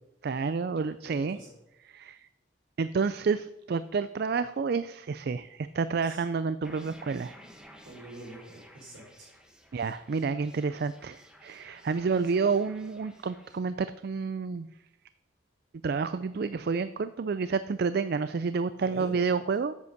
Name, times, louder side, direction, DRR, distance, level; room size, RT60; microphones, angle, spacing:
voice 1, 0.2-1.4 1.9-2.2 2.8-7.4 9.7-14.7 15.8-19.7, right 5 dB, 55° right, 14 dB, 0.4 m, -29 dB
voice 2, 1.0-1.5 6.0-6.2 7.9-9.3 10.7-10.9 18.8-19.2, right 1 dB, 80° right, -4 dB, 4.1 m, -46 dB
sound 1, 6.6-13.6, equal, 5° right, 1.1 m, -54 dB
9.6 x 8.3 x 6.5 m, 0.89 s
head